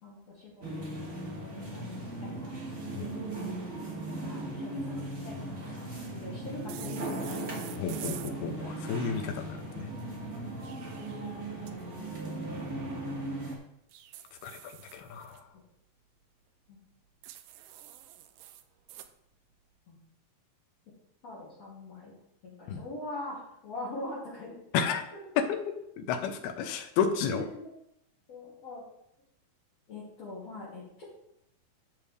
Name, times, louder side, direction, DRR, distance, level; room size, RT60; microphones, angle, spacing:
voice 1, 0.0-0.8 1.4-2.5 4.2-5.8 6.1-7.1 7.5-7.9 10.2-10.3 16.7-16.8 19.9-20.0 21.2-22.2 22.4-24.9 27.3-27.7 28.3-28.8 29.9-31.0, left 2 dB, 45° left, -9 dB, 3.5 m, -43 dB
sound 1, 0.6-13.6, right 1 dB, 20° right, 2.4 m, -37 dB
sound 2, 6.7-8.4 10.4-11.7 13.9-15.4 17.2-19.1, right 12 dB, 80° right, 1.9 m, -47 dB
voice 2, 7.8-9.9 14.3-15.5 22.7-22.8 24.7-25.0 25.4-27.5, left 7 dB, 85° left, 7 dB, 2.7 m, -32 dB
14.0 x 5.7 x 3.3 m, 0.79 s
omnidirectional pair, 4.5 m